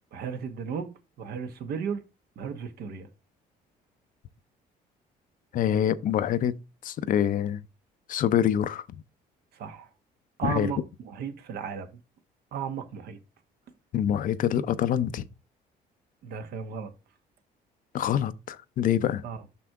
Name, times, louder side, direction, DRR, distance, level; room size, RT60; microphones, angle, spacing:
voice 1, 0.1-2.0 2.4-3.1 9.5-9.9 10.4-12.0 12.5-13.2 16.2-16.9 19.2-19.4, right 6 dB, 65° right, 1.2 m, -35 dB
voice 2, 5.5-7.6 8.1-8.8 10.4-10.7 13.9-15.2 17.9-19.2, left 10 dB, 55° left, 0.5 m, -26 dB
6.0 x 5.9 x 3.5 m
cardioid pair, 110°, 17 cm